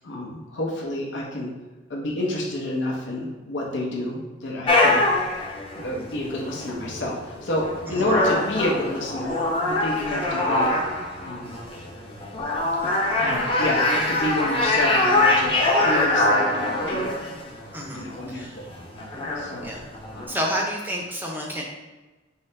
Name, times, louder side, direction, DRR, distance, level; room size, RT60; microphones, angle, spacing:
voice 1, 0.0-1.5 1.9-5.0 5.8-9.4 9.7-10.7 11.2-11.5 12.8-17.2 17.9-18.6 19.4-19.7 20.1-20.4, left 1 dB, 80° left, -2 dB, 0.8 m, -29 dB
sound 1, 4.7-20.3, left 2 dB, 30° left, 0.7 m, -24 dB
voice 2, 17.7-18.6 19.6-19.8 20.3-21.6, equal, 10° right, -1 dB, 0.5 m, -30 dB
4.7 x 2.8 x 3.2 m, 1.2 s
head